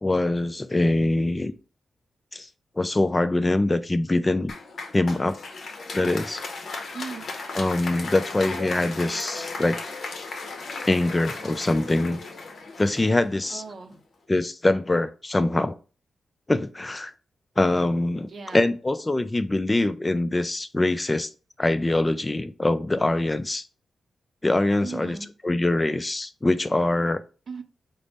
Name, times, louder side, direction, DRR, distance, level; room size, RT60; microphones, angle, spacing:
voice 1, 0.0-1.5 2.3-2.5 2.8-4.5 4.9-5.4 5.9-6.4 7.5-9.8 10.8-12.2 12.8-13.6 14.3-15.8 16.5-17.1 17.6-21.3 21.6-23.7 24.4-25.2 25.4-27.2, left 2 dB, 25° left, 0.3 m, -23 dB
Applause, 4.5-13.8, left 3 dB, 65° left, 0.7 m, -36 dB
voice 2, 6.9-7.3 13.5-14.0 18.3-18.7 24.8-25.3 27.5-27.6, right 5 dB, 60° right, 0.5 m, -38 dB
3.9 x 2.0 x 3.3 m
supercardioid pair, 50°, 0 cm